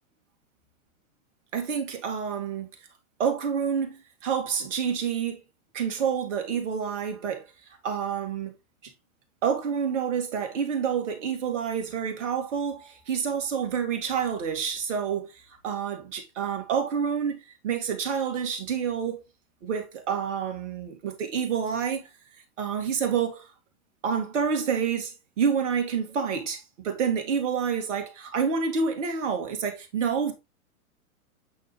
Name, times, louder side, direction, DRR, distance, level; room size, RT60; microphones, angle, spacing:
voice 1, 1.5-2.7 3.2-5.4 5.7-7.5 7.8-8.5 9.4-19.2 19.6-22.1 22.6-23.5 24.0-30.3, right 7 dB, 55° right, 2.2 m, -28 dB
8.6 x 4.3 x 3.1 m
figure-of-eight pair, 105°, 44 cm